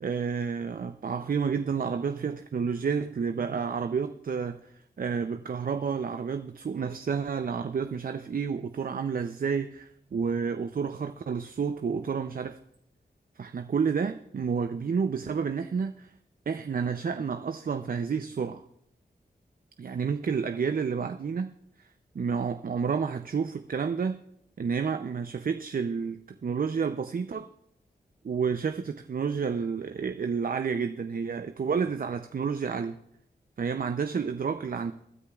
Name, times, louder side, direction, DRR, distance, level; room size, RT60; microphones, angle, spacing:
voice 1, 0.0-12.6 13.4-16.1 16.5-18.6 19.8-21.5 21.8-21.9 22.1-24.2 24.6-27.5 28.2-33.0 33.6-34.9, right 6 dB, 55° right, 8 dB, 0.5 m, -30 dB
24.5 x 9.9 x 2.4 m, 0.74 s
wide cardioid pair, 70°, 17 cm